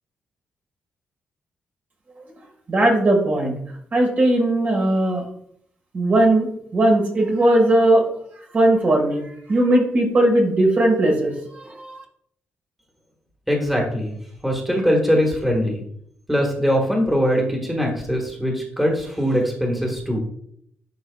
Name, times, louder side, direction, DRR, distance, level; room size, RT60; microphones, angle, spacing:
voice 1, 2.7-3.6 3.9-5.3 5.9-8.1 8.5-12.0, right 1 dB, 45° right, -1 dB, 1.8 m, -18 dB
voice 2, 13.5-14.1 14.4-15.8 16.3-20.2, equal, 5° right, -1 dB, 1.5 m, -21 dB
10.5 x 4.1 x 2.4 m, 0.68 s
cardioid pair, 105°, 4 cm